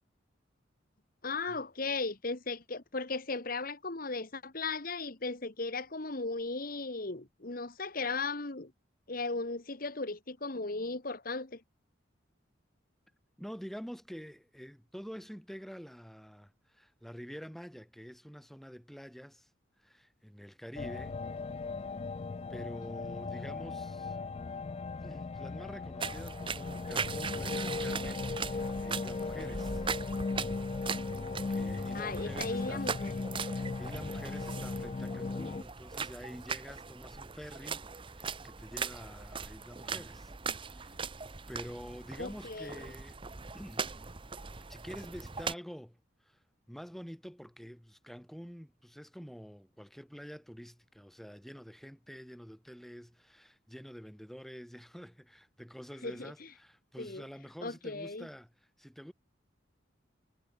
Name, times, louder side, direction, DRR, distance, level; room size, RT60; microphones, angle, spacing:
voice 1, 1.2-8.7 9.1-11.6 31.9-33.1 42.2-42.9 56.0-56.5 57.0-57.3 57.6-58.3, left 3 dB, 50° left, 1.5 m, -36 dB
voice 2, 13.4-19.5 19.8-21.2 22.5-24.2 25.0-29.8 31.5-33.1 33.4-37.8 38.1-41.0 41.5-43.2 43.5-43.9 44.7-46.0 46.2-46.4 46.7-58.5 58.8-59.1, equal, ahead, 2.8 m, -47 dB
sound 1, 20.8-35.6, left 4 dB, 30° left, 0.3 m, -37 dB
sound 2, 26.0-45.5, right 5 dB, 25° right, 0.9 m, -40 dB
head